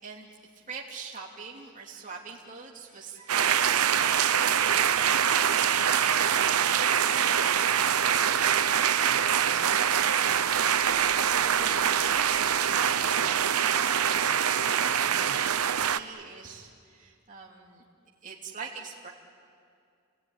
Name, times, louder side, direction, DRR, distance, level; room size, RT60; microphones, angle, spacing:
voice 1, 0.0-10.7 11.0-17.8 18.2-19.1, right 4 dB, 35° right, -2 dB, 2.9 m, -43 dB
sound 1, 3.3-16.0, right 8 dB, 90° right, 0.8 m, -24 dB
30.0 x 19.5 x 9.9 m, 2.3 s
head